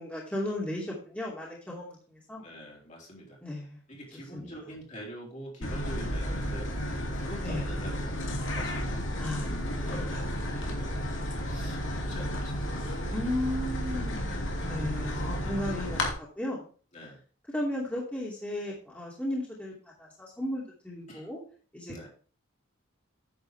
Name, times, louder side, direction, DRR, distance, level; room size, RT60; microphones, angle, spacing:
voice 1, 0.0-2.4 3.4-4.0 4.3-4.5 7.4-7.6 9.2-9.5 9.9-10.1 13.1-16.7 17.5-21.4 21.7-22.1, left 1 dB, 5° left, -5 dB, 2.7 m, -35 dB
voice 2, 2.4-3.4 3.9-9.1 9.4-10.3 10.5-11.0 11.5-13.0 16.9-17.2 21.1-21.3 21.9-22.1, equal, 35° left, -3 dB, 3.6 m, -44 dB
sound 1, 5.6-16.1, equal, 70° left, 2.8 m, -32 dB
10.0 x 7.9 x 3.5 m, 0.41 s
head